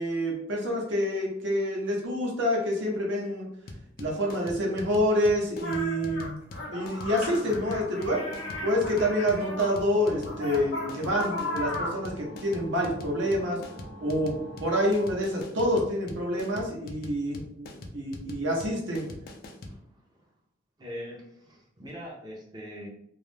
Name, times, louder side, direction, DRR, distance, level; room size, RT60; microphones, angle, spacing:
voice 1, 0.0-3.5 4.0-6.4 6.7-8.2 8.6-13.6 14.0-14.3 14.6-17.7 17.9-19.0, equal, 70° right, -2 dB, 0.8 m, -27 dB
sound 1, 3.7-19.8, left 1 dB, 50° left, 0.4 m, -42 dB
sound 2, 5.6-9.7 10.2-12.1, left 2 dB, 85° left, 0.8 m, -36 dB
sound 3, 7.0-15.2, right 1 dB, 35° right, 0.9 m, -46 dB
voice 2, 19.6-20.3 20.8-22.9, equal, 20° right, -4 dB, 0.5 m, -42 dB
2.4 x 2.0 x 3.1 m, 0.74 s
head